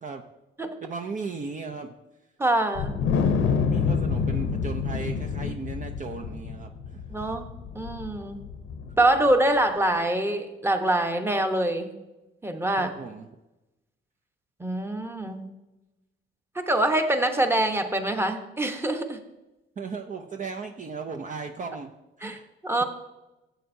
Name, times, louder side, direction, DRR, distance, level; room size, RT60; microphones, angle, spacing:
voice 1, 0.8-1.9 3.5-7.0 12.8-13.3 19.8-21.9 22.2-22.5, right 4 dB, 40° right, 4 dB, 0.7 m, -36 dB
voice 2, 2.4-3.0 7.1-7.5 7.7-8.4 9.0-11.9 12.4-12.9 14.6-15.5 16.5-19.2 22.2-22.8, right 1 dB, 10° right, 6 dB, 1.1 m, -25 dB
Wind, 2.8-9.3, left 6 dB, 85° left, 0.8 m, -27 dB
13.0 x 7.9 x 2.7 m, 1.0 s
cardioid pair, 90°, 20 cm